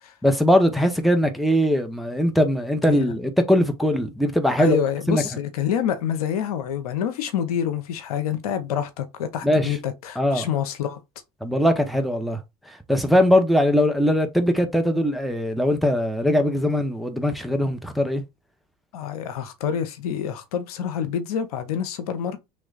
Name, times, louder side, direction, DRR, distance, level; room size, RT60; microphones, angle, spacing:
voice 1, 0.2-4.8 5.1-5.2 9.4-9.8 10.2-10.5 11.4-12.4 12.9-18.2, equal, ahead, 0.7 m, -21 dB
voice 2, 4.6-11.0 18.9-22.4, left 8 dB, 90° left, 0.6 m, -27 dB
3.1 x 2.2 x 3.8 m
hypercardioid pair, 70°, 19 cm